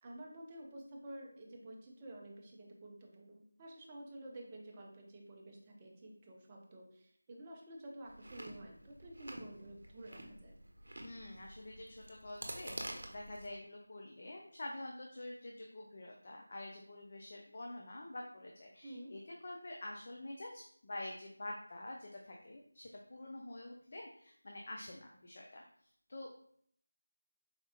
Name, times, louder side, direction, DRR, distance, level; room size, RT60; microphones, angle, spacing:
voice 1, 0.0-10.6 18.8-19.1, right 1 dB, 20° right, -1 dB, 0.5 m, -51 dB
Chewing mastication, 8.1-13.5, right 1 dB, 70° right, 0.7 m, -49 dB
voice 2, 11.0-26.4, left 1 dB, 40° left, 0 dB, 0.4 m, -47 dB
4.1 x 2.2 x 2.8 m, 0.66 s
figure-of-eight pair, 170°, 0 cm